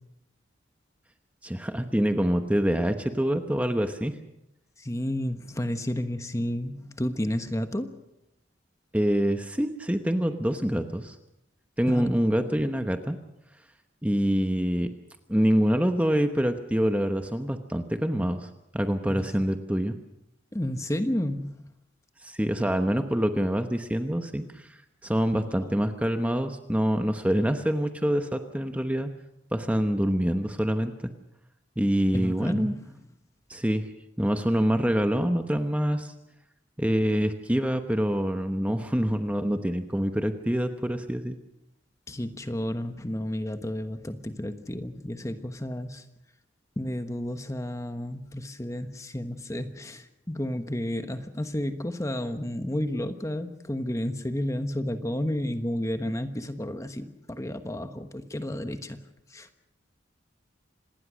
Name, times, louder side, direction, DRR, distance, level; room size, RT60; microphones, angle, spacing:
voice 1, 1.4-4.1 8.9-11.1 11.8-13.2 14.0-14.9 15.3-20.0 22.2-24.7 25.0-29.1 29.5-31.1 31.8-32.7 33.5-33.9 34.2-36.1 36.8-41.4, equal, 5° right, 6 dB, 1.0 m, -26 dB
voice 2, 4.8-7.9 11.9-12.2 19.1-19.3 20.5-21.6 25.3-25.6 32.1-32.9 42.1-46.0 46.8-59.0 59.3-59.6, left 1 dB, 15° left, 8 dB, 1.2 m, -31 dB
26.5 x 19.5 x 6.3 m, 0.88 s
head